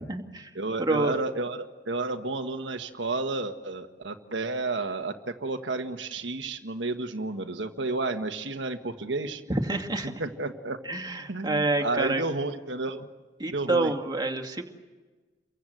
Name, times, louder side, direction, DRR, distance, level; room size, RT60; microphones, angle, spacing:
voice 1, 0.0-0.5 0.8-1.1 9.7-10.1 10.9-12.2 13.4-14.6, right 2 dB, 25° right, 3 dB, 2.3 m, -28 dB
voice 2, 0.5-9.4 10.0-10.8 11.3-13.1 13.5-13.9, right 3 dB, 85° right, 6 dB, 1.5 m, -31 dB
29.5 x 23.5 x 7.9 m, 1.3 s
head